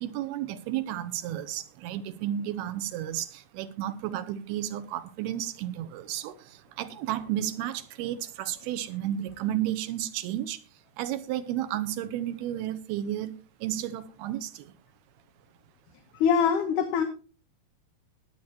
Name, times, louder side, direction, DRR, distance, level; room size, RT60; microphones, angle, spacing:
voice 1, 0.0-6.3 6.8-10.6 11.0-13.3 13.6-14.5, right 12 dB, 90° right, 2.8 m, -32 dB
voice 2, 16.2-17.0, left 7 dB, 70° left, 2.2 m, -23 dB
20.5 x 8.1 x 2.9 m
omnidirectional pair, 4.5 m